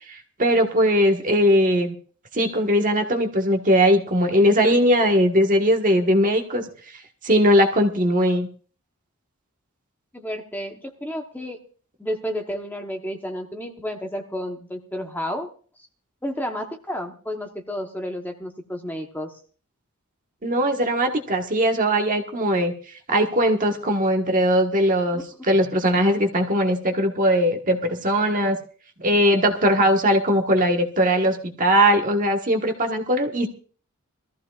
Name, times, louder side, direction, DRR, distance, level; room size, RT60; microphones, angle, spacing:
voice 1, 0.1-1.9 2.3-6.6 7.2-8.5 20.4-22.7 23.1-28.6 29.0-33.5, equal, 35° right, 3 dB, 1.5 m, -20 dB
voice 2, 10.1-11.6 12.0-15.5 16.2-19.4 25.1-25.2, equal, 10° left, 3 dB, 1.0 m, -31 dB
22.0 x 14.5 x 2.4 m, 0.40 s
head